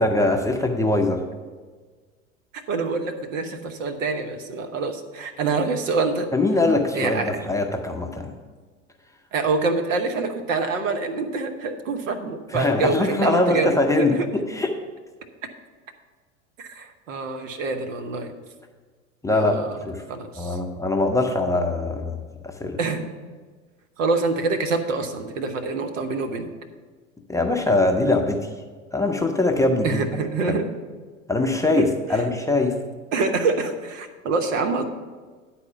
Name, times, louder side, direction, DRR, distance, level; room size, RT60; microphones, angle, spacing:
voice 1, 0.0-1.2 6.3-8.3 12.5-14.7 19.2-19.6 19.9-20.0 20.4-22.8 27.3-28.5 28.9-30.0 30.5-30.6 31.3-32.8, left 2 dB, 10° left, 3 dB, 0.6 m, -22 dB
voice 2, 2.7-6.3 6.9-7.5 9.3-14.3 16.6-18.3 19.3-19.8 20.1-20.6 22.8-23.0 24.0-26.5 29.8-30.7 33.1-34.8, right 3 dB, 70° right, 6 dB, 1.0 m, -26 dB
9.6 x 4.2 x 6.8 m, 1.5 s
figure-of-eight pair, 85°, 40 cm